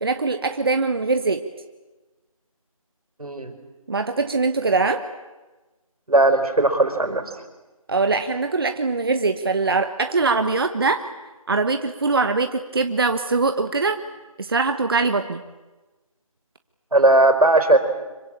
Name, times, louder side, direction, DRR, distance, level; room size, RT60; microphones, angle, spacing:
voice 1, 0.0-1.4 3.9-5.0 7.9-11.0 11.5-14.0 14.4-15.4, right 3 dB, 40° right, 7 dB, 1.2 m, -22 dB
voice 2, 3.2-3.6 6.1-7.2 16.9-17.8, right 2 dB, 90° right, 8 dB, 4.6 m, -17 dB
25.5 x 24.0 x 8.8 m, 1.2 s
figure-of-eight pair, 170°, 18 cm